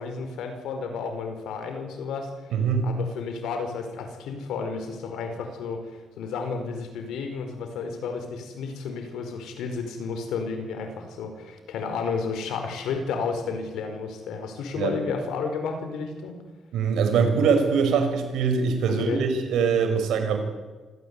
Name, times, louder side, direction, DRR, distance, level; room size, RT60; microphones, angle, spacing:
voice 1, 0.0-2.5 2.8-16.4 19.1-19.2, left 5 dB, 85° left, 6 dB, 4.8 m, -32 dB
voice 2, 2.5-3.0 14.8-15.0 16.7-20.4, right 5 dB, 80° right, 6 dB, 5.4 m, -23 dB
26.0 x 17.0 x 8.5 m, 1.3 s
cardioid pair, 90°, 0 cm